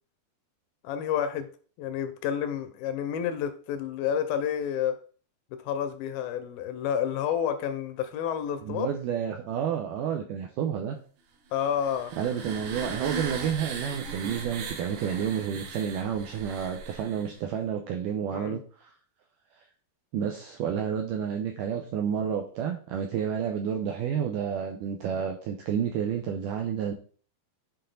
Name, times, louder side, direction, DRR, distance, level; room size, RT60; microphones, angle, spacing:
voice 1, 0.8-1.5 1.8-5.0 5.5-8.9 11.5-12.1 18.3-18.6, left 9 dB, 80° left, 10 dB, 2.2 m, -30 dB
voice 2, 8.6-11.0 12.2-18.9 19.6-19.7 20.1-26.9, right 8 dB, 85° right, 3 dB, 1.9 m, -30 dB
sound 1, 11.6-17.4, right 4 dB, 70° right, 2.6 m, -38 dB
7.9 x 4.3 x 3.8 m, 0.42 s
omnidirectional pair, 4.5 m